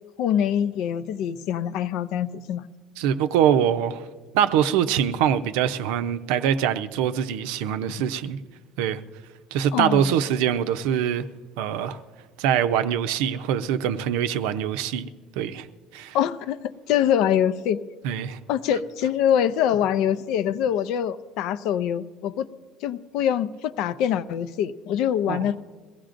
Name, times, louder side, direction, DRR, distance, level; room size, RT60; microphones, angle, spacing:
voice 1, 0.2-2.7 9.7-10.2 16.1-17.8 18.5-22.5 22.8-25.6, left 9 dB, 55° left, 0.5 m, -24 dB
voice 2, 3.0-4.0 4.3-8.4 8.8-9.0 9.5-11.2 11.6-12.0 12.4-15.1 15.4-15.7 15.9-16.2 18.0-18.4 25.3-25.5, right 9 dB, 80° right, 0.6 m, -23 dB
22.5 x 16.0 x 2.6 m
cardioid pair, 170°, 0 cm